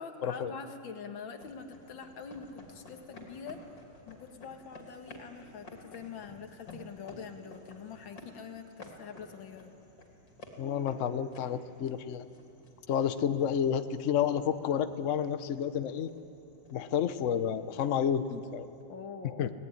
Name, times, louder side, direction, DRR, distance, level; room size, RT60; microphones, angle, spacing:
voice 1, 0.0-3.6 4.1-9.7 18.9-19.4, left 6 dB, 90° left, 6 dB, 2.3 m, -44 dB
sound 1, 1.4-18.8, left 2 dB, 70° left, 3.7 m, -54 dB
voice 2, 10.6-12.3 12.9-16.1 16.7-18.7 19.4-19.5, left 8 dB, 55° left, 11 dB, 1.0 m, -30 dB
24.5 x 19.0 x 9.9 m, 2.7 s
omnidirectional pair, 2.0 m